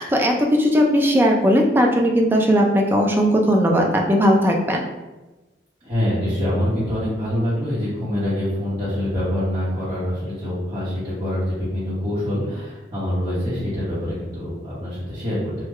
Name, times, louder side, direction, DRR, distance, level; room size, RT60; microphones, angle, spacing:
voice 1, 0.0-4.8, equal, 10° right, 1 dB, 0.3 m, -18 dB
voice 2, 5.8-15.7, left 1 dB, 30° right, -12 dB, 1.0 m, -25 dB
3.5 x 2.2 x 3.1 m, 1.1 s
head